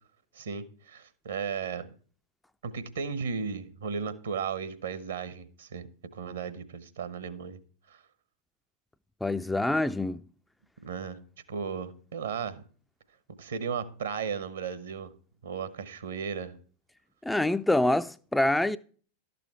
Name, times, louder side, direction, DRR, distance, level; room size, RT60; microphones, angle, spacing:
voice 1, 0.3-1.9 2.6-5.9 6.1-7.6 7.9-8.0 10.8-11.2 11.5-12.6 13.4-15.1 15.4-16.6, right 6 dB, 65° right, 1.1 m, -35 dB
voice 2, 9.2-10.2 17.2-18.8, left 1 dB, 5° left, 0.3 m, -26 dB
12.0 x 6.9 x 4.3 m
figure-of-eight pair, 90°, 0 cm